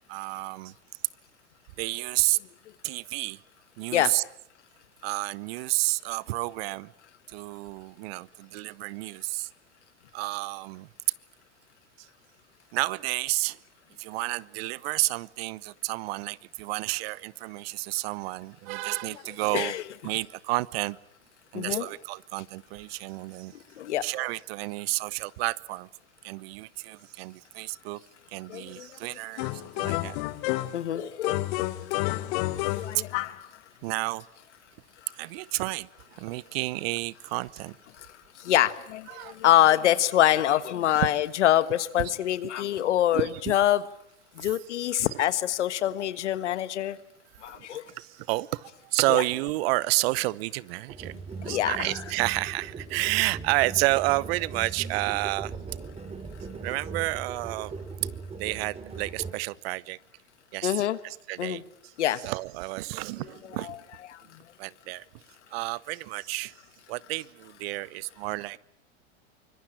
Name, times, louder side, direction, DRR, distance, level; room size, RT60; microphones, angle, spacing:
voice 1, 0.1-0.7 1.8-2.4 2.8-3.4 3.8-4.2 5.0-6.9 7.3-9.5 10.1-10.9 12.7-13.6 14.0-21.0 21.5-23.5 24.0-25.9 26.2-28.0 28.3-30.2 32.8-33.0 33.8-34.2 35.1-37.7 39.1-39.4 40.9-41.1 42.8-42.9 43.1-43.5 44.4-44.5 44.9-45.0 47.5-55.5 56.6-57.7 58.4-60.0 60.5-61.6 62.2-63.8 64.6-65.0 65.5-66.5 66.9-68.6, right 21 dB, 60° right, 22 dB, 0.9 m, -30 dB
voice 2, 19.5-19.8 21.5-21.9 23.8-24.0 28.5-29.0 30.7-31.5 32.7-33.1 38.0-38.1 38.4-43.8 44.3-47.0 47.4-47.8 49.1-49.2 51.5-52.0 60.6-61.0 61.4-61.6 62.0-62.2 63.6-63.8 64.1-64.4, left 12 dB, 80° left, 15 dB, 1.5 m, -25 dB
sound 1, 29.4-30.9 31.2-33.5, left 18 dB, 55° left, 1.5 m, -30 dB
sound 2, 50.9-59.3, right 4 dB, 15° right, 3.2 m, -39 dB
25.0 x 21.5 x 8.9 m, 0.71 s
hypercardioid pair, 115°, 34 cm